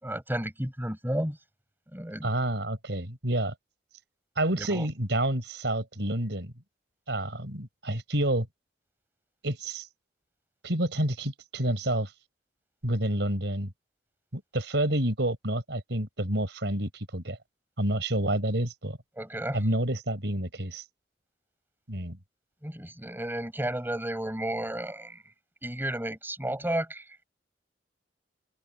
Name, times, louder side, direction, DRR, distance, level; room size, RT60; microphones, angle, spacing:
voice 1, 0.0-1.4 1.9-2.3 4.6-4.9 19.2-19.6 22.6-25.2 25.6-27.0, right 1 dB, 10° right, 5.7 m, -32 dB
voice 2, 2.2-3.5 4.4-6.5 7.1-8.5 9.4-9.9 10.6-12.1 12.8-13.7 14.3-17.4 17.8-19.0 19.5-20.8 21.9-22.2, right 1 dB, 70° right, 6.1 m, -29 dB
open air
head